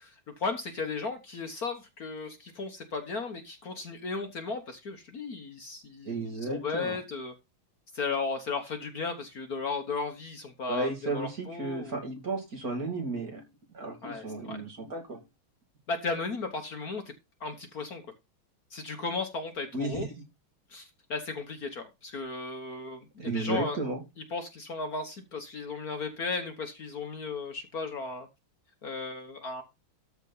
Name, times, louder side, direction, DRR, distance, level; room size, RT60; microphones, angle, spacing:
voice 1, 0.4-7.3 7.9-12.0 14.0-14.6 15.9-17.0 17.4-18.0 18.7-20.1 20.7-23.8 24.3-28.3 28.8-29.6, left 4 dB, 50° left, 7 dB, 1.5 m, -35 dB
voice 2, 6.0-7.0 10.7-13.4 13.7-15.2 19.7-20.1 23.2-24.0, right 2 dB, 45° right, 3 dB, 3.2 m, -33 dB
13.5 x 4.4 x 5.5 m, 0.24 s
omnidirectional pair, 2.2 m